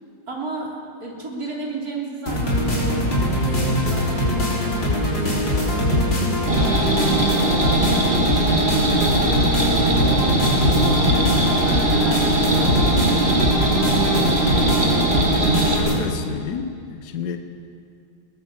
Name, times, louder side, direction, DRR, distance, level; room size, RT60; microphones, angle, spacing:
voice 1, 0.3-9.6 10.0-10.7 11.0-14.6, right 2 dB, 50° right, -3 dB, 4.1 m, -35 dB
sound 1, 2.3-16.0, left 1 dB, 80° left, 4.3 m, -22 dB
sound 2, 6.5-15.8, right 2 dB, 30° right, 2.5 m, -21 dB
voice 2, 15.6-17.4, left 7 dB, 65° left, 7 dB, 1.4 m, -30 dB
21.0 x 18.0 x 7.3 m, 2.4 s
omnidirectional pair, 2.0 m